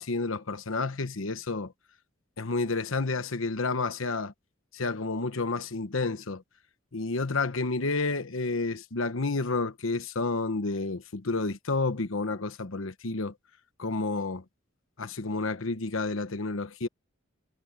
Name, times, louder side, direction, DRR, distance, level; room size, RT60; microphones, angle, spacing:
voice 1, 0.0-1.7 2.4-4.3 4.7-6.4 6.9-13.3 13.8-14.4 15.0-16.9, left 3 dB, 80° left, 1.1 m, -30 dB
head